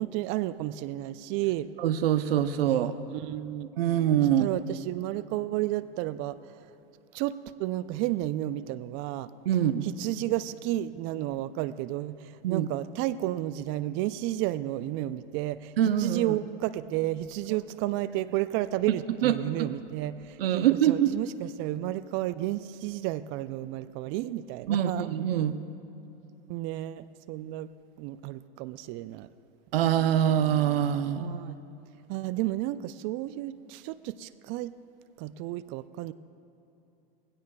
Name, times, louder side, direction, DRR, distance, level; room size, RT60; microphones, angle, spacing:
voice 1, 0.0-1.7 3.1-3.7 4.4-6.4 7.1-9.3 9.8-15.7 16.0-25.1 26.5-27.7 28.0-29.3 31.1-31.6 32.1-34.7 35.2-36.1, right 15 dB, 45° right, 15 dB, 0.4 m, -32 dB
voice 2, 1.8-3.0 3.8-4.5 9.5-9.9 12.4-12.7 15.8-16.4 18.9-19.7 20.4-21.1 24.7-25.6 29.7-31.3, right 10 dB, 75° right, 11 dB, 0.7 m, -24 dB
20.5 x 16.5 x 2.3 m, 2.9 s
hypercardioid pair, 95°, 29 cm